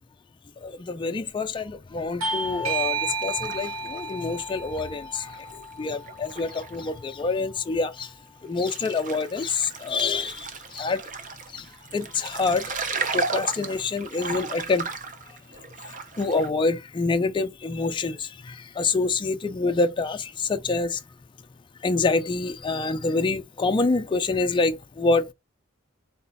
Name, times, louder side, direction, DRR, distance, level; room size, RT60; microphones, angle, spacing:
voice 1, 0.6-8.1 8.4-11.0 11.5-11.7 11.9-12.7 13.1-14.9 15.9-21.0 21.8-25.3, left 3 dB, 25° left, 0.3 m, -26 dB
Bell / Doorbell, 2.2-7.4, right 3 dB, 70° right, 1.1 m, -32 dB
sound 1, 3.0-4.8 5.2-6.9 7.2-7.3 8.0-8.1 8.5-16.5, right 4 dB, 40° right, 0.7 m, -35 dB
4.0 x 2.7 x 3.9 m
head